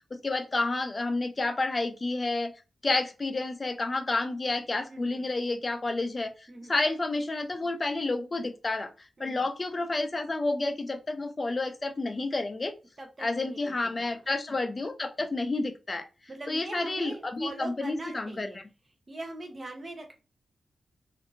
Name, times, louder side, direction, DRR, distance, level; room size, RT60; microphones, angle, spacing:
voice 1, 0.0-2.5 2.8-8.9 9.2-12.7 13.2-16.1 16.5-18.6, left 2 dB, 35° left, 8 dB, 0.5 m, -30 dB
voice 2, 4.9-5.3 6.5-6.7 9.2-9.5 13.0-14.2 14.5-14.8 16.3-18.6 19.1-20.1, right 2 dB, 40° right, 2 dB, 0.9 m, -42 dB
2.7 x 2.6 x 2.6 m, 0.31 s
cardioid pair, 75°, 0 cm